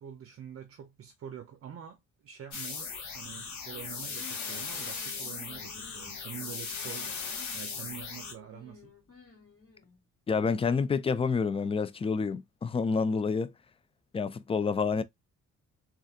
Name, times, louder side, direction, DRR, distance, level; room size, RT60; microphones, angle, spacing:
voice 1, 0.0-7.1 7.5-8.9, right 9 dB, 50° right, 0.6 m, -46 dB
sound 1, 2.5-8.3, left 5 dB, 70° left, 1.2 m, -38 dB
sound 2, 3.6-10.0, left 5 dB, 50° left, 2.1 m, -54 dB
voice 2, 10.3-13.5 14.1-15.0, left 5 dB, 20° left, 0.3 m, -28 dB
3.3 x 2.4 x 2.7 m
cardioid pair, 90°, 30 cm